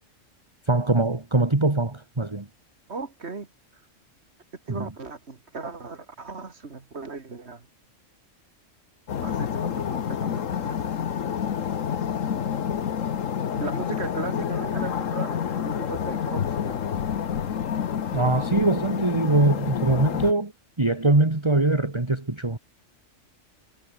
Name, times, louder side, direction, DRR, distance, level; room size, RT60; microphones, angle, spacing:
voice 1, 0.7-2.5 4.7-4.9 18.1-20.5 20.8-22.6, right 2 dB, 20° right, 1.9 m, -22 dB
voice 2, 2.9-3.5 4.7-7.7 9.2-10.9 13.5-17.0, right 4 dB, 55° right, 2.5 m, -37 dB
sound 1, 9.1-20.3, left 8 dB, 85° left, 1.5 m, -28 dB
omnidirectional pair, 1.3 m